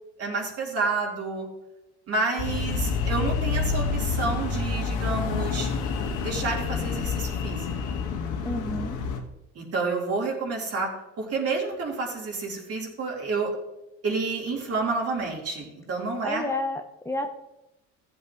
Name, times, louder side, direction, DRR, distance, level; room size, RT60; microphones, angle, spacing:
voice 1, 0.2-1.5 2.1-5.7 6.2-8.0 9.5-10.9 11.2-13.5 14.0-16.4, right 3 dB, 45° right, -1 dB, 3.9 m, -29 dB
sound 1, 2.4-9.2, left 5 dB, 70° left, 1.8 m, -28 dB
voice 2, 8.4-9.0 16.2-17.3, left 2 dB, 10° left, 4 dB, 0.9 m, -30 dB
15.0 x 7.8 x 3.1 m, 0.96 s
supercardioid pair, 80°, 33 cm